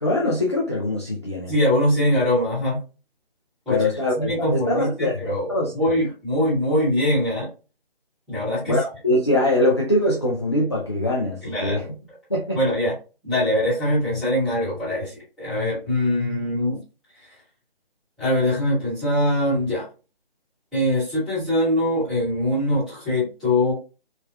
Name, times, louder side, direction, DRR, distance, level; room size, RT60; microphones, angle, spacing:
voice 1, 0.0-1.5 3.7-5.7 8.7-11.8 12.3-12.6, left 1 dB, 30° left, 0.4 m, -23 dB
voice 2, 1.5-2.8 3.7-3.9 4.2-7.5 8.3-8.8 11.4-11.9 12.5-12.9 13.2-16.8 18.2-19.9 20.7-23.7, left 1 dB, ahead, 0.9 m, -22 dB
3.4 x 2.1 x 2.2 m
figure-of-eight pair, 145°, 30 cm